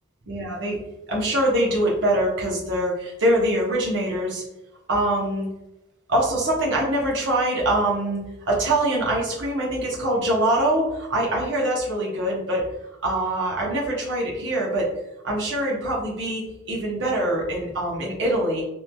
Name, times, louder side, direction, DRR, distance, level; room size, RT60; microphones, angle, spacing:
voice 1, 0.3-0.8 1.1-4.4 4.9-5.5 6.1-8.2 8.4-12.6 13.0-14.9 15.2-18.6, right 1 dB, 60° right, -3 dB, 0.9 m, -23 dB
3.0 x 2.7 x 2.2 m, 0.94 s
head